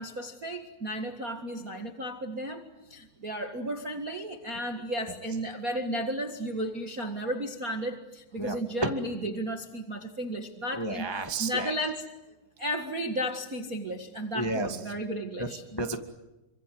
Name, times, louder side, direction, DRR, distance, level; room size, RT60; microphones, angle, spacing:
voice 1, 0.0-11.1 11.4-12.0 12.6-15.6, equal, 45° right, 4 dB, 1.1 m, -34 dB
voice 2, 10.7-11.7 14.3-14.8 15.4-16.0, right 2 dB, 15° left, 4 dB, 0.7 m, -31 dB
27.5 x 25.5 x 7.9 m, 1.0 s
omnidirectional pair, 4.5 m